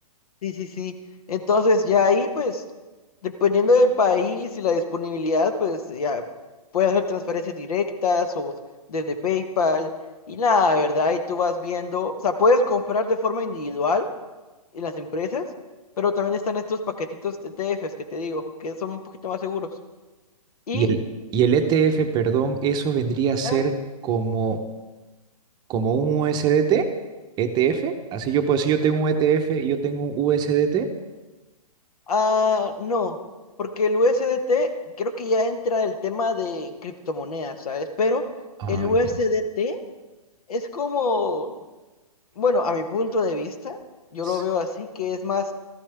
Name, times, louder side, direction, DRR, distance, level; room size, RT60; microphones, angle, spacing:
voice 1, 0.4-0.9 1.3-2.6 3.2-6.2 6.7-8.5 8.9-9.9 10.3-14.1 14.7-15.5 16.0-19.7 20.7-21.0 23.4-23.6 32.1-33.2 33.6-34.7 35.0-38.2 38.7-39.8 40.5-41.5 42.4-43.8 44.1-45.5, left 3 dB, 70° left, 8 dB, 1.3 m, -23 dB
voice 2, 20.7-21.0 21.3-23.8 24.0-24.6 25.7-26.9 27.4-30.9 38.6-39.0 44.2-44.4, right 7 dB, 20° right, 6 dB, 0.8 m, -22 dB
14.0 x 13.0 x 3.5 m, 1.2 s
hypercardioid pair, 135°, 19 cm